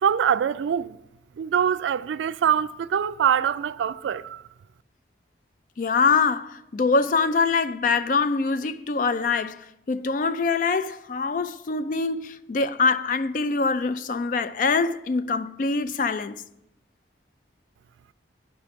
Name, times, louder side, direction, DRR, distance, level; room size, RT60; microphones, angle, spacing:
voice 1, 0.0-1.0 1.4-4.5, right 8 dB, 85° right, 0.3 m, -24 dB
voice 2, 5.8-16.4, left 4 dB, 45° left, 0.3 m, -24 dB
10.5 x 4.9 x 5.1 m
head